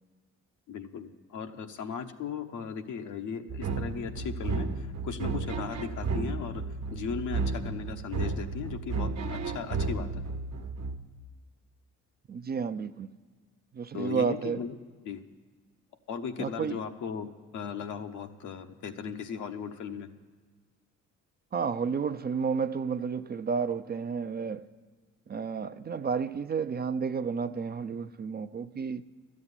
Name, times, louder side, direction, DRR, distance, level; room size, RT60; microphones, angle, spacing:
voice 1, 0.7-6.6 6.9-10.2 13.9-14.7 15.0-15.2 16.1-20.1, left 6 dB, 80° left, 1.0 m, -37 dB
sound 1, 3.5-11.0, right 4 dB, 60° right, 1.1 m, -33 dB
voice 2, 12.3-13.1 13.7-14.6 16.4-16.8 21.5-24.7 25.3-29.0, right 6 dB, 35° right, 0.5 m, -31 dB
12.5 x 7.4 x 9.7 m
cardioid pair, 90°, 30 cm